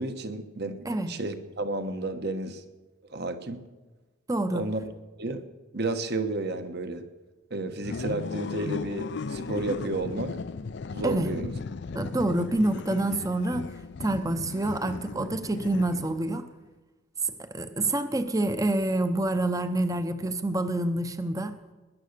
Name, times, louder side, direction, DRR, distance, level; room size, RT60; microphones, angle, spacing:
voice 1, 0.0-2.6 3.1-3.6 4.5-4.8 5.2-5.4 5.7-7.0 7.5-10.4 10.9-11.5, right 2 dB, 55° right, 8 dB, 1.3 m, -32 dB
voice 2, 4.3-4.7 11.0-11.3 11.9-13.7 14.0-16.4 17.2-21.5, right 2 dB, 15° right, 9 dB, 0.8 m, -27 dB
sound 1, 7.8-16.4, left 4 dB, 60° left, 0.4 m, -36 dB
20.0 x 10.5 x 6.7 m, 1.2 s
head